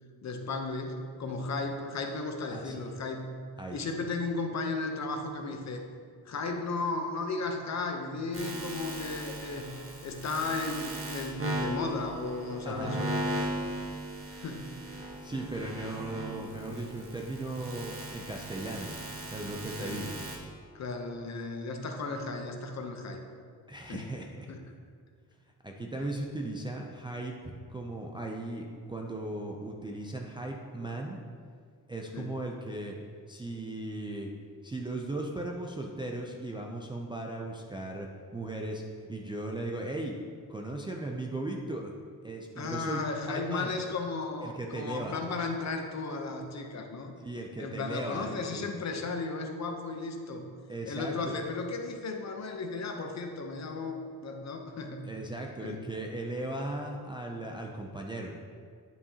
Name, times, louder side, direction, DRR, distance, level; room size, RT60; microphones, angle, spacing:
voice 1, 0.2-3.3 3.7-5.8 6.2-9.7 10.0-13.3 14.3-14.8 19.8-20.1 20.7-23.2 23.9-24.1 24.5-24.6 32.1-32.3 42.6-47.1 47.6-50.5 50.9-55.1 55.6-55.9, left 3 dB, 45° left, 4 dB, 0.7 m, -35 dB
voice 2, 2.5-2.9 3.6-3.8 12.7-13.0 15.2-18.9 19.3-20.2 23.7-24.5 25.6-31.2 31.9-33.0 33.3-34.3 34.6-38.8 39.1-40.2 40.5-41.9 42.2-43.7 44.4-45.2 47.2-48.6 50.7-51.4 55.0-58.3, right 2 dB, 15° right, 0 dB, 0.3 m, -37 dB
sound 1, 8.3-20.4, right 1 dB, 35° right, 1.1 m, -38 dB
9.2 x 5.6 x 2.8 m, 2.1 s
cardioid pair, 145°, 38 cm